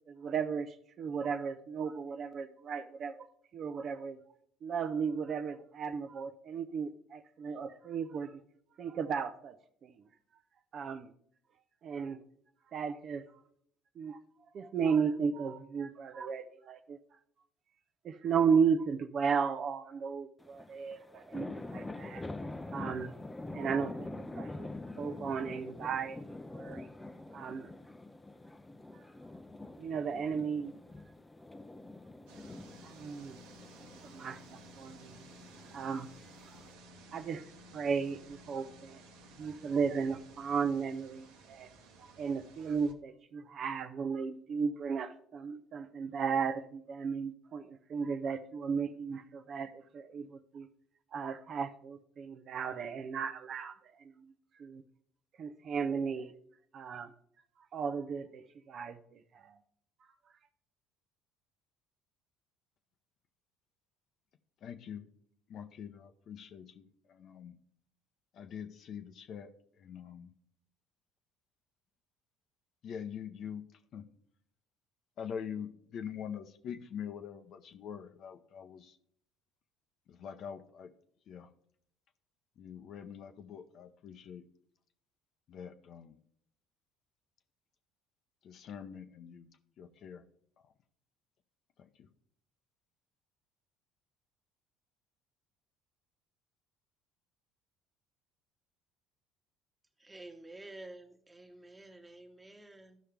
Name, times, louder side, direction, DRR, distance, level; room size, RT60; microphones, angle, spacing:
voice 1, 0.1-3.3 3.5-4.2 4.6-8.4 8.8-9.9 10.7-11.1 11.8-12.2 12.7-13.2 14.0-14.2 14.5-17.0 18.0-22.2 22.7-23.1 23.5-24.1 24.4-24.7 25.0-26.2 26.5-26.9 27.3-27.7 29.8-30.7 32.8-33.4 34.1-35.2 35.7-36.1 36.5-36.6 37.1-37.4 37.7-39.0 39.4-41.7 42.2-50.7 51.1-53.8 54.2-54.3 54.6-54.8 55.4-56.3 56.7-57.1 57.7-59.6, right 6 dB, 50° right, 10 dB, 0.6 m, -35 dB
sound 1, 20.4-36.7, left 2 dB, 15° left, 0.6 m, -46 dB
sound 2, 32.3-42.9, right 1 dB, 80° right, 1.0 m, -55 dB
voice 2, 64.6-65.1 65.5-67.6 68.3-69.5 69.8-70.3 72.8-73.6 73.9-74.0 75.2-79.0 80.1-80.9 81.3-81.5 82.6-84.4 85.5-86.2 88.4-89.5 89.8-90.2 91.8-92.1, left 8 dB, 55° left, 8 dB, 0.7 m, -44 dB
voice 3, 100.0-103.0, right 2 dB, 15° right, 4 dB, 1.3 m, -50 dB
13.5 x 5.6 x 3.4 m, 0.65 s
hypercardioid pair, 70°, 0 cm